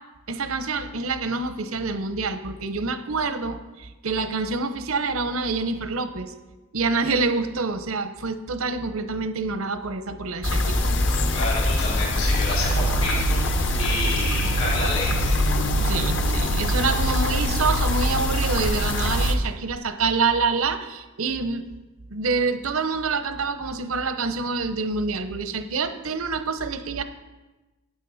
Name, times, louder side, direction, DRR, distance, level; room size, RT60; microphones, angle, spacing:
voice 1, 0.3-6.3 6.7-10.8 15.8-21.7 22.1-27.0, right 4 dB, 85° right, 10 dB, 0.8 m, -27 dB
sound 1, 10.4-19.3, left 1 dB, 60° left, 1.0 m, -23 dB
voice 2, 11.3-15.5, left 2 dB, 85° left, -6 dB, 4.2 m, -29 dB
13.0 x 9.1 x 4.1 m, 1.1 s
head